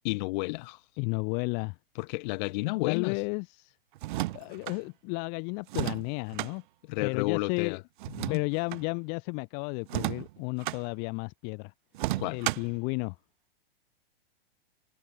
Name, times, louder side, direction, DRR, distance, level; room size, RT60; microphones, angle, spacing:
voice 1, 0.0-0.8 2.0-3.2 6.9-7.8 8.2-8.4 12.2-12.4, left 24 dB, 50° left, 2.2 m, -31 dB
voice 2, 1.0-1.8 2.9-3.7 4.3-6.6 7.0-7.8 8.3-11.7 12.3-13.2, left 37 dB, 35° left, 0.5 m, -33 dB
sound 1, 4.0-4.8 5.7-6.5 8.0-8.8 9.9-10.8 11.9-12.8, right 17 dB, 55° right, 0.7 m, -33 dB
hypercardioid pair, 115°, 30 cm